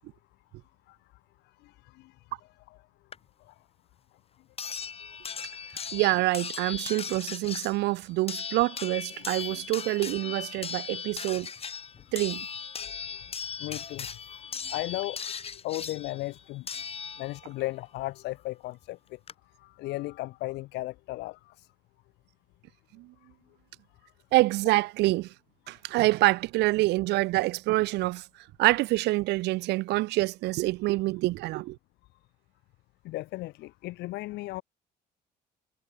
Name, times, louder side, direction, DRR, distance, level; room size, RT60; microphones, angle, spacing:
voice 1, 1.6-2.1 2.7-2.8 3.5-3.6 9.1-9.6 12.8-12.9 13.6-14.4 14.6-15.2 15.6-16.7 17.2-19.2 19.6-21.7 33.0-34.6, left 19 dB, 85° left, 4.7 m, -36 dB
sound 1, 3.1-3.2 4.6-17.6 18.8-18.9 19.3-19.4, left 6 dB, 35° left, 3.8 m, -38 dB
voice 2, 5.9-11.5 12.1-12.5 23.0-23.1 24.3-25.3 25.7-28.2 28.6-31.8, right 19 dB, 85° right, 2.7 m, -26 dB
cardioid pair, 110°, 17 cm